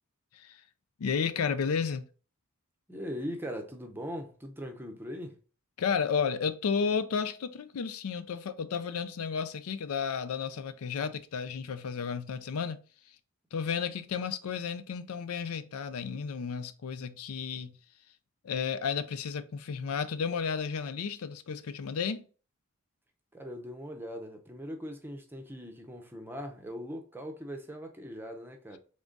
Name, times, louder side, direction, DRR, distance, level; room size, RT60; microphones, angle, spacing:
voice 1, 1.0-2.0 5.8-12.8 13.5-17.7 18.4-22.2, left 6 dB, 85° left, 0.4 m, -32 dB
voice 2, 2.9-5.4 23.3-28.8, equal, 10° right, 0.6 m, -40 dB
3.8 x 3.5 x 3.8 m
head